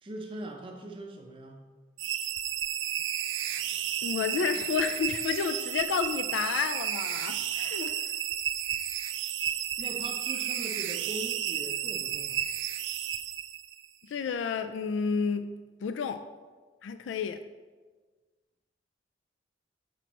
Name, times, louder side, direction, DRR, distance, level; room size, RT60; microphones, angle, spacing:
voice 1, 0.0-1.7 9.8-12.5, right 1 dB, 30° right, 2 dB, 0.5 m, -41 dB
sound 1, 2.0-13.9, right 10 dB, 85° right, 0.4 m, -32 dB
voice 2, 4.0-7.9 14.1-16.2 16.8-17.4, left 6 dB, 85° left, 9 dB, 0.3 m, -31 dB
6.8 x 6.1 x 3.0 m, 1.4 s
head